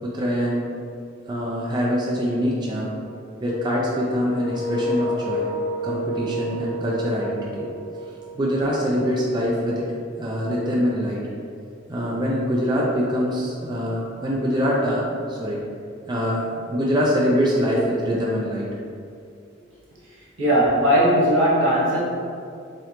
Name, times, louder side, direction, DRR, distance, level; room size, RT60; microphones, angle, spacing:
voice 1, 0.0-0.6 1.3-2.9 3.4-5.5 5.8-7.7 8.3-9.8 10.2-11.2 11.9-15.0 15.3-15.6 16.1-18.7, equal, 20° right, -4 dB, 0.4 m, -24 dB
sound 1, 4.2-9.0, equal, 60° left, 0.8 m, -30 dB
voice 2, 20.4-22.0, equal, 80° right, -6 dB, 1.1 m, -18 dB
3.7 x 3.2 x 2.9 m, 2.4 s
head